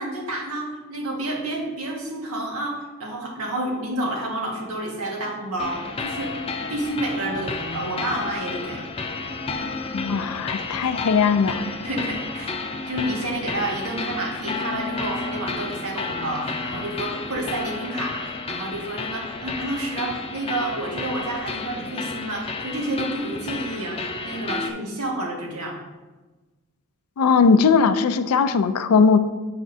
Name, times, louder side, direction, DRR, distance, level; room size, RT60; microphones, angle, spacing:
voice 1, 0.0-6.3 6.7-8.8 11.8-25.8, right 1 dB, 80° right, -2 dB, 1.6 m, -29 dB
sound 1, 5.6-24.7, left 3 dB, 25° left, 0.4 m, -31 dB
voice 2, 9.9-11.6 27.2-29.2, left 5 dB, 90° left, 11 dB, 0.4 m, -19 dB
8.3 x 5.1 x 2.6 m, 1.2 s
head